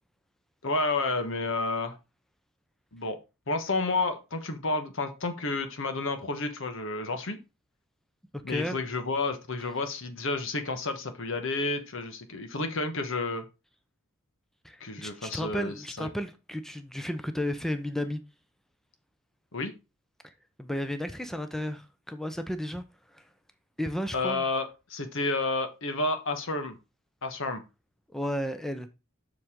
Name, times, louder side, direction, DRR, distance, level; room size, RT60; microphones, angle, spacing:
voice 1, 0.6-2.0 2.9-3.2 3.5-7.4 8.4-13.5 14.8-16.1 19.5-19.7 24.1-26.8 27.2-27.6, left 3 dB, 65° left, 1.3 m, -30 dB
voice 2, 8.3-8.8 12.6-12.7 14.6-18.2 20.2-20.3 20.6-23.3 23.8-24.5 28.1-28.9, equal, ahead, 0.6 m, -33 dB
7.3 x 6.5 x 3.7 m
head